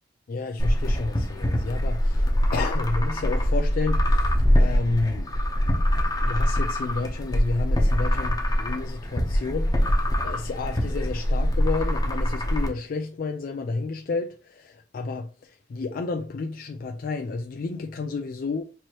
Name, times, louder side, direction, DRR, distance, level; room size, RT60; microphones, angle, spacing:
voice 1, 0.3-5.3 6.2-18.6, left 3 dB, 50° left, 0.3 m, -31 dB
sound 1, 0.6-12.7, equal, 20° left, 0.8 m, -23 dB
4.5 x 3.0 x 2.9 m
head